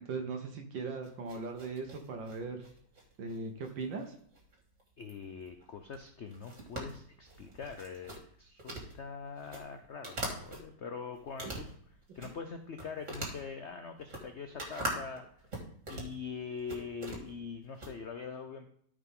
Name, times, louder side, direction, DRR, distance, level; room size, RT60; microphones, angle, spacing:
voice 1, 0.0-2.6 3.2-4.1, right 4 dB, 75° right, 4 dB, 1.7 m, -39 dB
sound 1, 1.0-10.6 11.1-12.5 12.8-17.9, right 2 dB, 40° right, 2.4 m, -43 dB
voice 2, 5.0-11.7 12.1-15.3 15.9-18.7, left 5 dB, 85° left, 6 dB, 0.6 m, -43 dB
13.0 x 5.0 x 3.7 m, 0.63 s
omnidirectional pair, 2.1 m